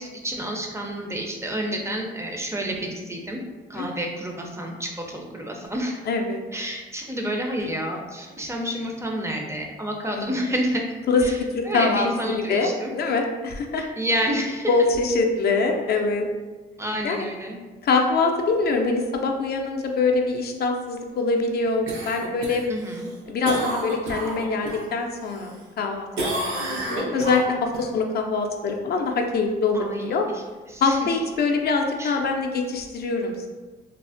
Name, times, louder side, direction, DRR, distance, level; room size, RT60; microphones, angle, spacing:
voice 1, 0.0-3.4 3.7-6.0 6.5-10.9 11.2-11.4 11.6-12.9 13.8-14.7 16.8-17.6 22.7-23.1 29.7-30.4 30.7-31.2 32.0-32.2, equal, 15° right, 1 dB, 0.5 m, -29 dB
voice 2, 6.1-6.4 10.1-10.3 11.1-11.2 11.5-12.1 12.5-13.8 14.7-16.2 17.0-17.3 17.8-22.7 23.3-30.3 30.8-33.5, left 4 dB, 55° left, 2 dB, 0.4 m, -24 dB
Cough, 21.9-24.9 25.3-25.9 26.2-27.8 32.3-32.4, right 1 dB, 75° right, 0.6 m, -31 dB
3.2 x 2.0 x 2.5 m, 1.3 s
cardioid pair, 90°, 20 cm